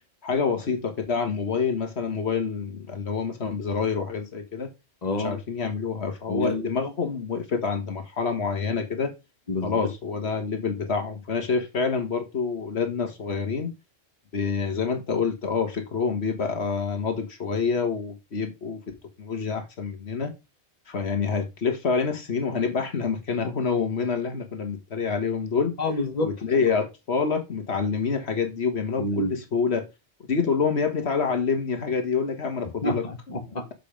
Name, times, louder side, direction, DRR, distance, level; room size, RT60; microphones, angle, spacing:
voice 1, 0.2-4.7 5.2-9.1 9.6-13.7 14.3-18.8 19.2-20.3 20.9-25.8 26.2-29.9 30.3-33.0, left 5 dB, 80° left, 1.6 m, -27 dB
voice 2, 5.0-5.4 6.3-6.6 9.5-9.8 25.8-26.4 29.0-29.3 32.8-33.7, left 2 dB, 40° left, 1.6 m, -28 dB
6.8 x 5.2 x 5.1 m
omnidirectional pair, 1.1 m